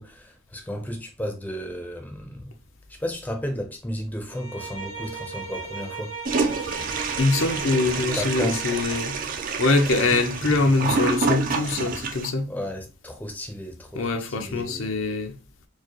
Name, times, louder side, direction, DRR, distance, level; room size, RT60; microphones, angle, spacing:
voice 1, 0.0-2.5 2.9-6.2 7.5-8.6 10.8-10.9 12.5-14.9, equal, 10° left, 0.6 m, -34 dB
Bowed string instrument, 4.3-9.5, right 4 dB, 85° right, 2.0 m, -37 dB
Toilet flush, 6.2-12.3, right 4 dB, 40° right, 0.5 m, -28 dB
voice 2, 7.2-9.2 9.6-12.5 13.9-15.3, left 3 dB, 70° left, 0.6 m, -23 dB
4.6 x 2.2 x 2.9 m
head